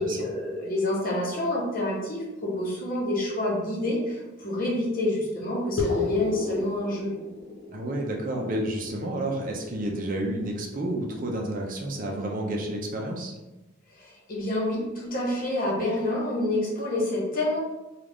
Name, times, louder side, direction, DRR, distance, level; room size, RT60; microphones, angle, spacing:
voice 1, 0.0-7.1 13.9-17.6, left 1 dB, 45° left, -3 dB, 1.0 m, -28 dB
sound 1, 5.8-10.6, left 4 dB, 70° left, 0.9 m, -33 dB
voice 2, 7.7-13.3, right 1 dB, 40° right, 0 dB, 0.5 m, -30 dB
3.8 x 2.4 x 3.4 m, 1.0 s
head